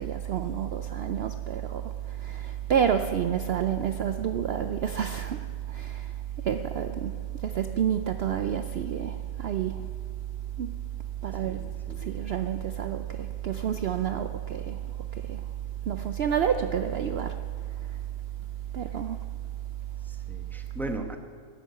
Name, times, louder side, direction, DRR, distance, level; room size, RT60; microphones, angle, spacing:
voice 1, 0.0-9.9 10.6-10.7 11.2-11.7 12.0-15.5 15.9-17.4 17.8-18.0 18.7-19.2, right 9 dB, 75° right, 0.5 m, -29 dB
voice 2, 11.4-12.2 20.0-21.2, right 1 dB, ahead, 0.9 m, -38 dB
13.5 x 8.6 x 9.5 m
omnidirectional pair, 1.7 m